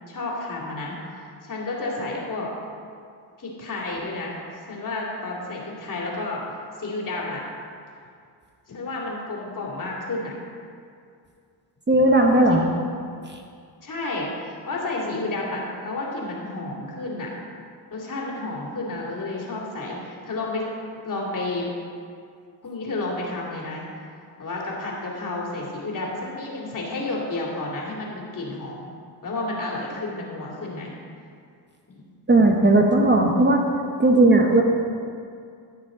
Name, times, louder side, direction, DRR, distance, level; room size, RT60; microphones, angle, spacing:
voice 1, 0.1-1.0 1.4-2.5 3.4-6.4 6.8-7.4 8.7-10.3 12.5-12.9 13.8-17.3 17.9-20.7 21.0-21.7 22.6-23.9 24.4-28.9 29.2-30.9 31.9-32.0, left 2 dB, 45° left, -3 dB, 2.7 m, -31 dB
voice 2, 11.9-12.7 32.3-33.6 34.0-34.6, right 2 dB, 25° right, 1 dB, 1.1 m, -16 dB
14.5 x 6.1 x 3.9 m, 2.3 s
cardioid pair, 80°, 43 cm